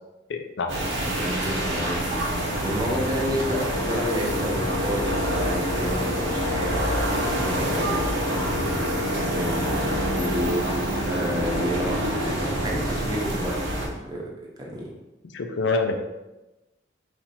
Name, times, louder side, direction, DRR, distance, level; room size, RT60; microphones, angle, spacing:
voice 1, 0.3-0.7 15.3-16.0, left 3 dB, 85° left, 5 dB, 0.5 m, -25 dB
sound 1, 0.7-13.9, right 1 dB, 85° right, 1.1 m, -26 dB
voice 2, 1.1-6.8 7.4-8.1 8.5-14.3 14.6-14.9, equal, 20° right, -3 dB, 0.8 m, -31 dB
Wind instrument woodwind instrument, 3.6-10.4, left 6 dB, 45° left, 0.7 m, -33 dB
4.3 x 2.5 x 4.2 m, 1.0 s
head